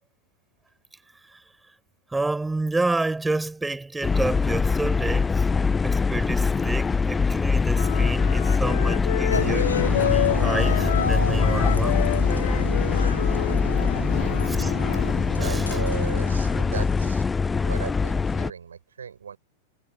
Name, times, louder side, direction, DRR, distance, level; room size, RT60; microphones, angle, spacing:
voice 1, 2.1-5.5 5.8-12.0 14.5-14.7 15.4-15.7, right 2 dB, 10° right, 5.6 m, -29 dB
sound 1, 4.0-18.5, left 4 dB, 15° left, 0.6 m, -23 dB
Wind instrument woodwind instrument, 7.7-15.1, left 13 dB, 55° left, 2.4 m, -30 dB
sound 2, 9.3-17.1, left 4 dB, 75° left, 1.3 m, -31 dB
voice 2, 14.1-14.4 15.4-17.2 17.5-19.4, right 7 dB, 70° right, 5.3 m, -36 dB
figure-of-eight pair, 90°, 0 cm